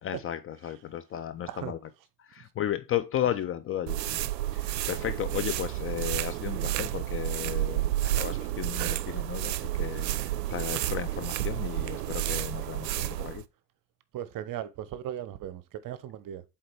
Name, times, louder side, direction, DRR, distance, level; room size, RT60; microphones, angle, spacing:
voice 1, 0.0-1.8 2.2-4.2 4.5-13.4, left 11 dB, 30° left, 0.5 m, -34 dB
sound 1, 3.9-13.4, right 13 dB, 80° right, 0.6 m, -31 dB
voice 2, 14.1-16.4, right 11 dB, 40° right, 0.9 m, -37 dB
7.8 x 3.9 x 3.3 m
figure-of-eight pair, 65°, 49 cm